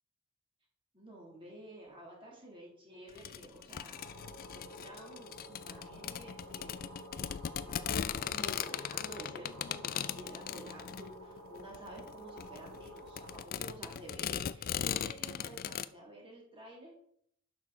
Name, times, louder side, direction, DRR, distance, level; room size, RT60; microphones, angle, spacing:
voice 1, 0.9-6.8 7.2-16.9, right 1 dB, 25° right, -3 dB, 2.5 m, -51 dB
sound 1, 3.1-15.8, left 9 dB, 40° left, 0.3 m, -39 dB
sound 2, 4.0-13.4, equal, 80° right, 2.1 m, -51 dB
11.5 x 6.2 x 3.8 m, 0.68 s
head